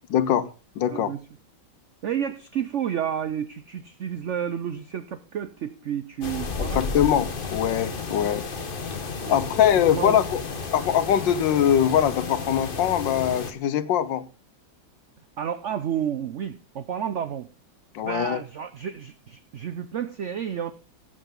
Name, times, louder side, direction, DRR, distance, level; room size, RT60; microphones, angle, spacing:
voice 1, 0.1-0.5 0.8-1.1 6.7-8.4 9.3-10.4 10.7-14.3 17.9-18.4, left 10 dB, 80° left, 14 dB, 1.5 m, -22 dB
voice 2, 0.9-1.2 2.0-6.9 8.1-8.2 9.3-9.5 10.0-10.2 15.4-17.5 18.0-20.7, right 9 dB, 85° right, 12 dB, 0.6 m, -31 dB
sound 1, 6.2-13.5, left 4 dB, 35° left, 1.1 m, -32 dB
14.5 x 8.0 x 3.8 m, 0.33 s
omnidirectional pair, 2.1 m